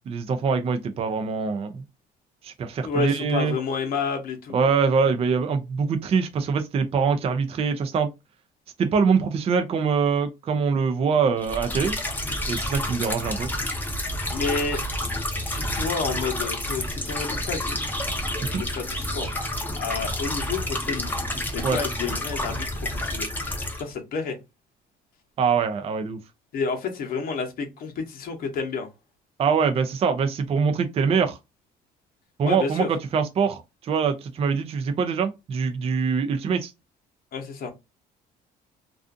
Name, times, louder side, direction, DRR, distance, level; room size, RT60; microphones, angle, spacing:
voice 1, 0.0-1.8 2.4-3.5 4.5-8.1 8.8-12.0 12.5-13.5 18.5-18.6 21.6-21.8 25.4-26.2 29.4-31.4 32.4-36.7, right 5 dB, 35° right, 0.4 m, -24 dB
voice 2, 2.8-4.7 14.3-14.8 15.4-17.8 18.5-19.3 19.8-21.2 21.5-23.3 23.8-24.4 26.5-28.9 32.4-32.9 37.3-37.7, left 4 dB, 60° left, 0.8 m, -30 dB
sound 1, 11.4-23.8, left 1 dB, 10° left, 0.6 m, -29 dB
2.4 x 2.4 x 2.4 m
cardioid pair, 110°, 17 cm